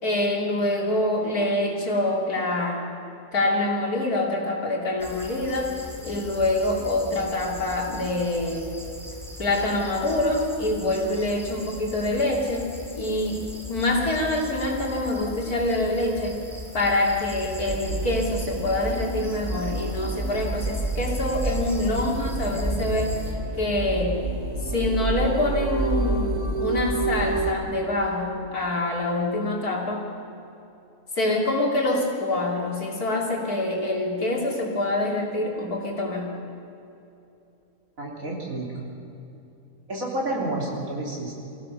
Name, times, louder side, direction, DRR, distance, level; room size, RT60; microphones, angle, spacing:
voice 1, 0.0-2.9 3.3-5.8 6.0-8.7 9.4-16.4 16.7-24.2 24.6-30.1 31.1-36.4, left 2 dB, 85° left, -1 dB, 3.4 m, -25 dB
sound 1, 5.0-23.3, left 1 dB, ahead, 2.8 m, -39 dB
sound 2, 17.7-27.5, right 2 dB, 25° right, 1.9 m, -28 dB
voice 2, 38.0-38.9 39.9-41.6, right 1 dB, 65° right, -2 dB, 4.0 m, -30 dB
24.5 x 15.5 x 6.9 m, 2.8 s
omnidirectional pair, 1.6 m